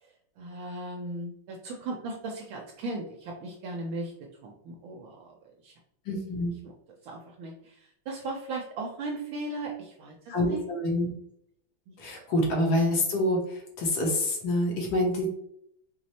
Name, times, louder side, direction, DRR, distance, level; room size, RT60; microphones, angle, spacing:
voice 1, 0.4-5.3 5.6-5.7 6.6-6.7 7.0-10.7 11.9-12.0, right 2 dB, 75° right, 0 dB, 1.3 m, -37 dB
voice 2, 6.1-6.5 10.3-11.1 12.0-15.3, left 1 dB, 70° left, 0 dB, 1.6 m, -27 dB
4.7 x 2.0 x 4.1 m, 0.71 s
omnidirectional pair, 2.4 m